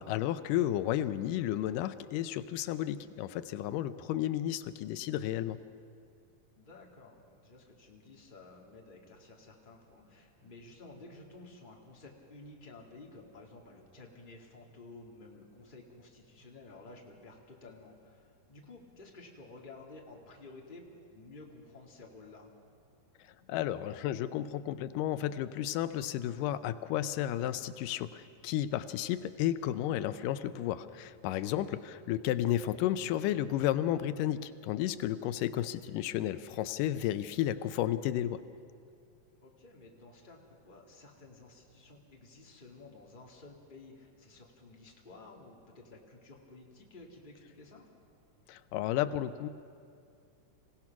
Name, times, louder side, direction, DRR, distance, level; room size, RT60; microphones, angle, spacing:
voice 1, 0.0-5.6 23.5-38.4 48.5-49.5, left 12 dB, 90° left, 13 dB, 2.2 m, -32 dB
voice 2, 6.6-22.5 31.3-31.5 39.4-47.9, left 3 dB, 20° left, -1 dB, 1.8 m, -53 dB
27.0 x 17.0 x 6.0 m, 2.3 s
omnidirectional pair, 3.7 m